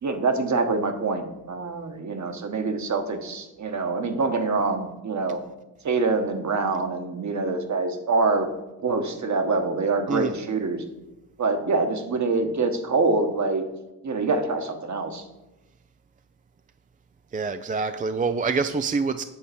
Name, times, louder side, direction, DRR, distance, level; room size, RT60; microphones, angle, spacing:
voice 1, 0.0-5.4 5.8-8.5 8.8-10.8 11.4-13.6 14.0-15.2, right 3 dB, 45° right, 7 dB, 1.3 m, -25 dB
voice 2, 17.3-19.2, right 4 dB, 20° right, 10 dB, 0.4 m, -26 dB
8.6 x 3.9 x 6.9 m, 1.0 s
supercardioid pair, 65°, 40 cm